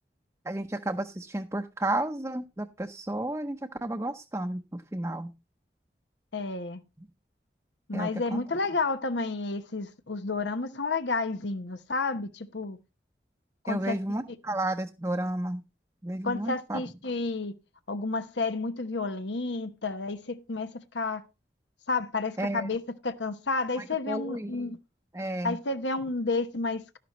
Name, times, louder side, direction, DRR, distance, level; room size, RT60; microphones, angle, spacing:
voice 1, 0.4-5.3 7.0-7.1 7.9-8.4 13.7-15.6 16.0-16.8 22.4-22.7 23.8-24.8 25.1-25.6, right 1 dB, 15° right, 0.7 m, -32 dB
voice 2, 6.3-6.8 7.9-12.8 13.6-14.0 16.2-17.5 17.9-21.2 21.9-24.8 25.4-27.0, left 3 dB, 90° left, 1.0 m, -31 dB
12.0 x 11.0 x 3.1 m
head